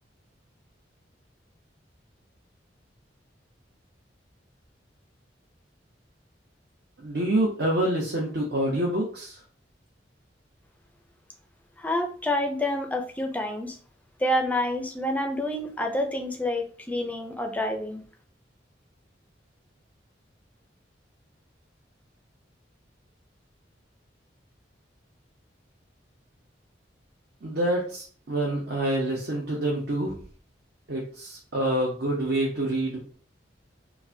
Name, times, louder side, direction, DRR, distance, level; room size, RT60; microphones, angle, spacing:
voice 1, 7.0-9.4 27.4-30.1 30.9-33.1, right 1 dB, 60° right, -2 dB, 0.8 m, -27 dB
voice 2, 11.8-13.8 14.2-18.0, left 1 dB, 10° left, 5 dB, 0.4 m, -28 dB
4.7 x 2.1 x 2.7 m, 0.43 s
head